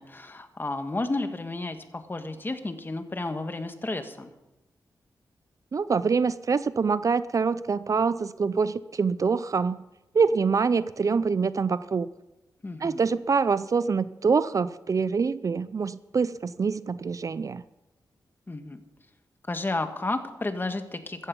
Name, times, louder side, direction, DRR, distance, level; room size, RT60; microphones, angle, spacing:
voice 1, 0.0-4.3 12.6-13.0 18.5-18.8 19.5-21.3, left 2 dB, 30° left, 8 dB, 1.6 m, -32 dB
voice 2, 5.7-9.8 10.1-12.1 12.8-17.6, right 5 dB, 50° right, 16 dB, 0.5 m, -25 dB
15.5 x 14.0 x 5.4 m, 1.0 s
cardioid pair, 75°, 8 cm